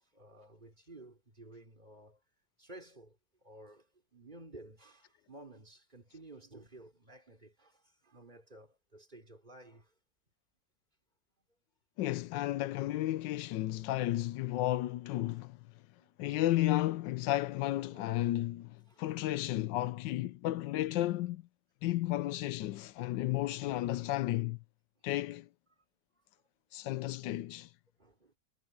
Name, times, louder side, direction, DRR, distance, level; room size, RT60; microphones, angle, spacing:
voice 1, 0.0-2.2 2.6-9.9 16.0-16.1 17.9-18.3 18.9-19.1 22.7-22.8 23.6-23.9 25.0-25.1 28.0-28.3, right 2 dB, 25° right, 4.5 m, -54 dB
voice 2, 12.0-15.6 16.2-21.4 21.8-24.6 25.0-25.5 26.7-27.7, left 15 dB, 85° left, 1.3 m, -33 dB
omnidirectional pair, 1.9 m